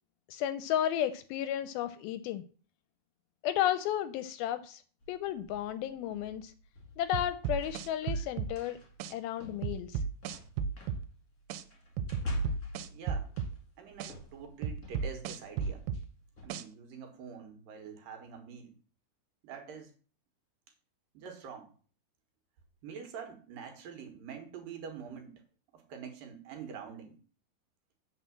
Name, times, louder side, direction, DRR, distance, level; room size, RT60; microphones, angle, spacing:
voice 1, 0.3-2.4 3.4-4.8 5.1-6.5 7.0-8.8 9.1-10.0, left 11 dB, 80° left, 12 dB, 2.3 m, -33 dB
sound 1, 5.0-16.5, right 1 dB, 30° left, 1.9 m, -44 dB
sound 2, 7.1-8.5 9.0-9.1 9.6-11.0 11.5-11.6 12.0-13.5 14.0-14.1 14.6-16.0 16.5-16.6, right 6 dB, 90° right, 2.7 m, -34 dB
voice 2, 12.9-13.3 13.8-15.8 16.4-18.7 19.4-19.9 21.1-21.7 22.8-25.4 25.7-27.2, right 6 dB, 65° right, 4 dB, 2.9 m, -45 dB
8.1 x 4.6 x 7.3 m, 0.40 s
omnidirectional pair, 4.5 m